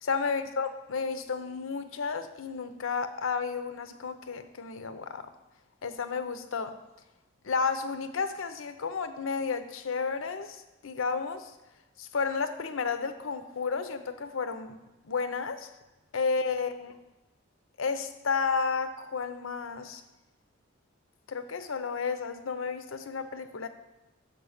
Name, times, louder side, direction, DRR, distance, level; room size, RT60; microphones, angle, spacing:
voice 1, 0.0-5.3 5.8-6.7 7.4-11.5 12.0-14.8 15.1-15.7 16.1-16.9 17.8-20.0 21.3-23.7, left 5 dB, 85° left, 10 dB, 0.6 m, -32 dB
6.9 x 4.6 x 6.5 m, 1.0 s
head